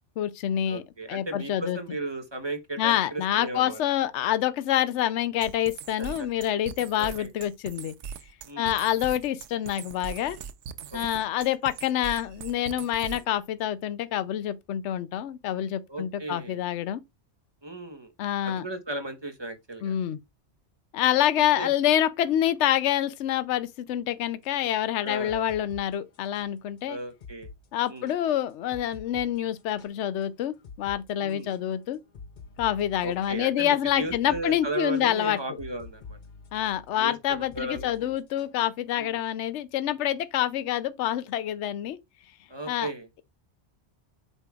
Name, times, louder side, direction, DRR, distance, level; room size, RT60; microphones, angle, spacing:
voice 1, 0.2-0.8 1.1-1.8 2.8-7.9 8.6-10.4 10.9-17.0 18.2-18.7 19.8-20.2 20.9-27.0 27.7-32.0 32.6-35.4 36.5-42.0 42.7-42.9, left 11 dB, 80° left, 0.9 m, -27 dB
voice 2, 0.7-3.8 6.0-6.3 7.0-7.3 8.5-8.7 10.9-11.2 13.1-13.2 15.9-16.6 17.6-18.1 18.4-20.0 21.6-21.7 25.0-25.5 26.9-27.5 27.9-28.1 31.2-31.5 33.0-36.2 37.0-38.2 39.0-39.2 42.5-43.1, right 2 dB, 25° right, 1.0 m, -36 dB
sound 1, 5.4-13.4, right 7 dB, 90° right, 1.0 m, -40 dB
sound 2, 24.4-26.5 26.8-26.9 27.2-27.6 27.9-30.2 30.6-31.0 31.3-38.6, left 4 dB, 45° left, 0.8 m, -47 dB
8.1 x 5.3 x 2.4 m
omnidirectional pair, 1.2 m